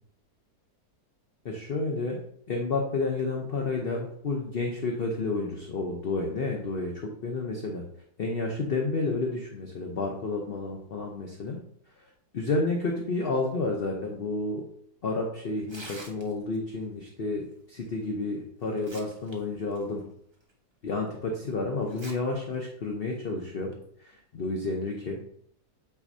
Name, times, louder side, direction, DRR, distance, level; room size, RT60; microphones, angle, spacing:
voice 1, 1.4-2.2 2.5-6.9 7.2-7.8 8.2-11.6 12.3-14.6 15.0-20.0 20.8-23.7 24.0-25.2, left 3 dB, 45° left, 1 dB, 0.8 m, -30 dB
Tearing, 15.6-16.6 18.0-18.1 18.6-19.3 19.7-19.8 20.5-20.6 21.8-22.1 22.5-22.6 23.5-23.7, right 2 dB, 25° right, 0.7 m, -45 dB
8.5 x 4.2 x 2.7 m, 0.66 s
omnidirectional pair, 1.7 m